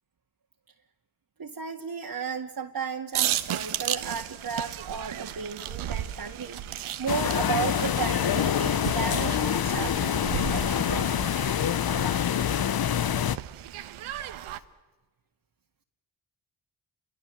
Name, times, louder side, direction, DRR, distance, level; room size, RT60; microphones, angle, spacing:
voice 1, 1.4-6.6 7.0-11.0 12.7-12.8, right 6 dB, 45° right, -1 dB, 2.2 m, -34 dB
sound 1, 3.1-14.6, right 12 dB, 80° right, 1.3 m, -35 dB
sound 2, 7.1-13.4, left 9 dB, 45° left, 0.9 m, -26 dB
28.5 x 23.0 x 7.9 m, 1.2 s
supercardioid pair, 45°, 49 cm